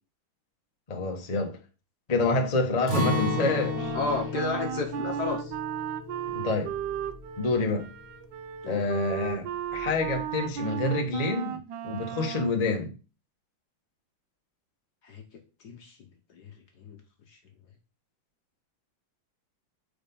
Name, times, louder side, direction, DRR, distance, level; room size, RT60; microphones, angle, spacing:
voice 1, 0.9-1.6 2.1-3.9 6.3-6.7 7.4-7.9 8.6-12.9, left 3 dB, 30° left, 0.7 m, -27 dB
Acoustic guitar, 2.9-8.8 9.1-9.3 9.7-10.2, left 3 dB, 35° right, 2.2 m, -33 dB
Wind instrument woodwind instrument, 3.7-12.6, right 10 dB, 75° right, 1.1 m, -35 dB
voice 2, 3.9-5.5 8.6-8.8 15.0-15.2 15.6-16.0 16.3-17.0 17.3-17.4, left 3 dB, 60° left, 1.2 m, -33 dB
4.7 x 4.3 x 5.3 m
omnidirectional pair, 2.3 m